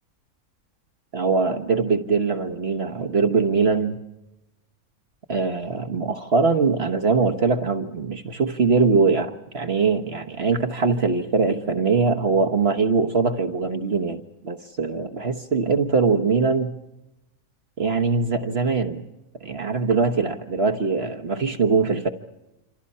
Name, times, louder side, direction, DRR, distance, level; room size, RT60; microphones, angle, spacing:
voice 1, 1.1-4.0 5.3-16.7 17.8-19.0 19.4-22.1, right 4 dB, 45° right, 5 dB, 1.3 m, -22 dB
27.5 x 26.0 x 5.5 m, 0.95 s
omnidirectional pair, 1.5 m